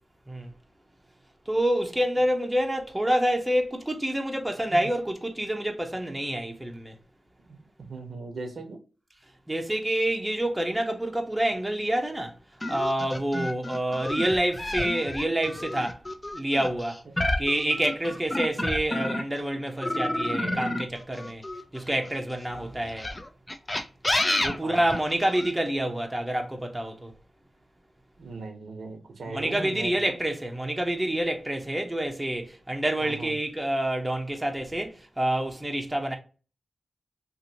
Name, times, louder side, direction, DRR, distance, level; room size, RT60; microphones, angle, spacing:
voice 1, 1.5-6.9 9.5-12.3 12.7-16.0 16.3-17.0 17.4-21.4 21.7-23.1 24.4-27.1 29.3-36.2, right 1 dB, 15° right, 0.7 m, -27 dB
voice 2, 7.5-8.8 17.2-17.4 24.6-24.9 28.2-30.1 33.0-33.3, right 3 dB, 75° right, 0.7 m, -39 dB
sound 1, 12.6-19.4 19.8-22.2 22.9-25.5, left 1 dB, 25° left, 0.4 m, -30 dB
2.8 x 2.5 x 2.6 m
cardioid pair, 60°, 0 cm